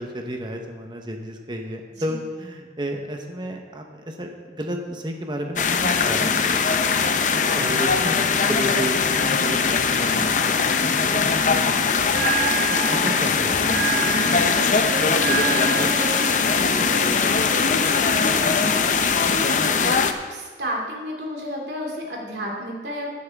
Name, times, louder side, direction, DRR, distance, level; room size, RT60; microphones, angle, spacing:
voice 1, 0.0-7.1 7.5-10.6 11.1-12.1 12.6-14.6, equal, 25° right, 3 dB, 1.1 m, -32 dB
sound 1, 5.6-20.1, left 5 dB, 45° left, 0.6 m, -21 dB
Bell, 12.0-20.0, right 7 dB, 60° right, 1.8 m, -31 dB
voice 2, 12.6-13.0 14.8-20.0 20.3-23.1, equal, 75° right, -2 dB, 2.6 m, -33 dB
15.0 x 9.2 x 3.6 m, 1.5 s
head